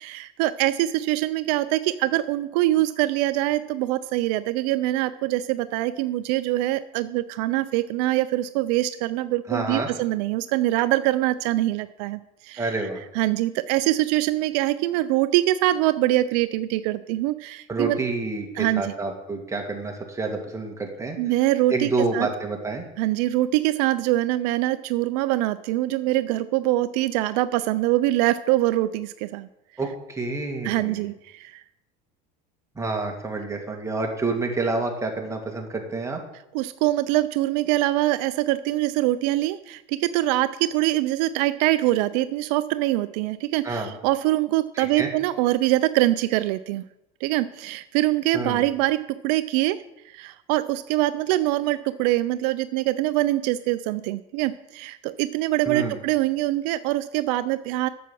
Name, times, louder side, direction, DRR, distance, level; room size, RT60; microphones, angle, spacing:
voice 1, 0.0-12.7 13.1-18.0 18.6-18.9 21.2-22.3 23.0-29.5 30.6-31.6 36.5-46.8 47.2-49.8 50.1-57.9, right 16 dB, 75° right, 14 dB, 0.5 m, -24 dB
voice 2, 9.5-9.9 12.6-13.0 17.7-21.2 21.7-22.8 29.8-31.0 32.8-36.2 43.6-43.9 44.8-45.1 48.3-48.6 55.7-56.0, right 3 dB, 15° right, 2 dB, 2.2 m, -28 dB
9.1 x 7.1 x 6.2 m, 0.88 s
supercardioid pair, 105°, 21 cm